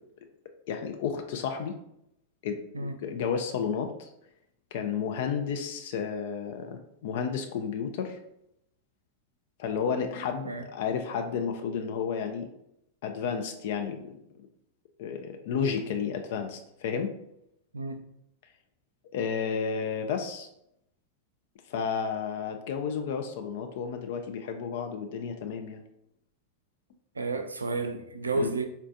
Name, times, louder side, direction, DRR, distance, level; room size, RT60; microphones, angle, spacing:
voice 1, 0.7-1.8 2.4-4.1 4.7-8.2 9.6-12.5 13.0-14.2 15.0-17.1 19.1-20.5 21.7-25.8 28.3-28.5, left 6 dB, 55° left, 5 dB, 0.3 m, -32 dB
voice 2, 27.2-28.7, right 3 dB, 75° right, 7 dB, 0.3 m, -31 dB
3.9 x 2.2 x 2.5 m, 0.78 s
figure-of-eight pair, 90°, 0 cm